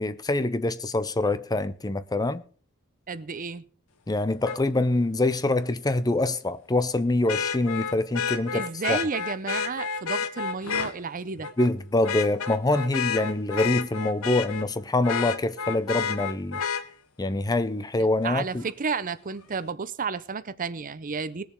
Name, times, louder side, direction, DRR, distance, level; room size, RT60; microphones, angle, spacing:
voice 1, 0.0-2.4 4.1-9.0 11.6-16.6 17.2-18.6, left 2 dB, 20° left, 0.6 m, -25 dB
voice 2, 3.1-3.6 8.5-11.5 18.0-21.4, right 5 dB, 40° right, 0.6 m, -32 dB
Vehicle horn car horn honking, 4.4-4.6 7.3-10.9 11.4-11.7 12.0-14.7 15.0-16.8 18.7-18.8, left 6 dB, 80° left, 1.0 m, -30 dB
20.0 x 7.0 x 4.5 m
head